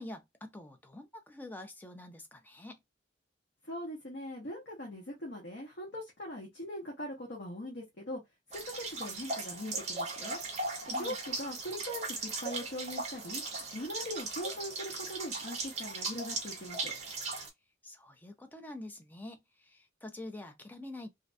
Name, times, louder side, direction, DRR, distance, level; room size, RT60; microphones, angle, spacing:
voice 1, 0.0-2.8 10.9-11.2 17.8-21.1, left 1 dB, 10° left, 0.3 m, -46 dB
voice 2, 3.6-8.2 8.5-10.4 10.9-17.0, left 1 dB, 55° left, 0.7 m, -41 dB
sound 1, 8.5-17.5, right 3 dB, 35° right, 0.6 m, -38 dB
2.5 x 2.1 x 2.4 m
head